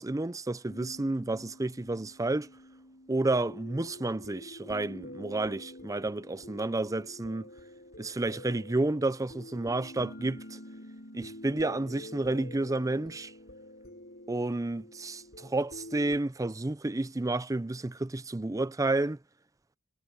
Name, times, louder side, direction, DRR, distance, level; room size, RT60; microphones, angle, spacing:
voice 1, 0.0-2.5 3.1-7.5 8.0-10.6 11.1-13.3 14.3-19.2, right 2 dB, 15° right, 0.5 m, -31 dB
sound 1, 0.7-16.2, left 1 dB, 55° left, 8.0 m, -47 dB
head